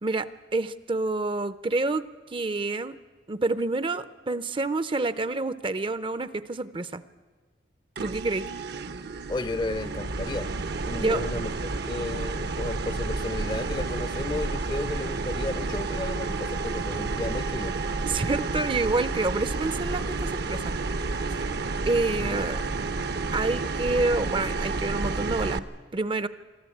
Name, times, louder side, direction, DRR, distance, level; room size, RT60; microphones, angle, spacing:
voice 1, 0.0-3.0 3.3-7.0 8.0-8.4 10.9-11.2 18.1-20.7 21.9-22.7 23.3-25.7 25.9-26.3, right 3 dB, 30° right, 0.5 m, -28 dB
sound 1, 8.0-25.6, right 3 dB, 60° right, 0.8 m, -30 dB
voice 2, 9.3-10.6 10.8-17.8 22.2-22.5, left 2 dB, 25° left, 0.5 m, -33 dB
23.5 x 13.5 x 8.5 m
head